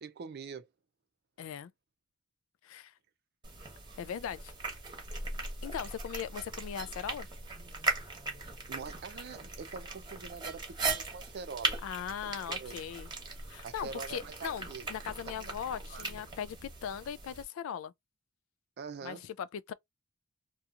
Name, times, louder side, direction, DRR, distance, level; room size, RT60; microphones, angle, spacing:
voice 1, 0.0-0.7 8.7-11.8 12.2-12.8 13.6-14.9 15.3-15.4 15.9-16.1 18.8-19.2, right 5 dB, 55° right, 0.5 m, -44 dB
voice 2, 1.4-1.7 2.6-2.9 4.0-4.5 5.6-7.3 11.8-13.1 13.5-17.9 19.0-19.7, left 8 dB, 75° left, 0.3 m, -39 dB
sound 1, 3.4-17.4, right 3 dB, 25° right, 1.0 m, -39 dB
2.8 x 2.3 x 2.4 m
head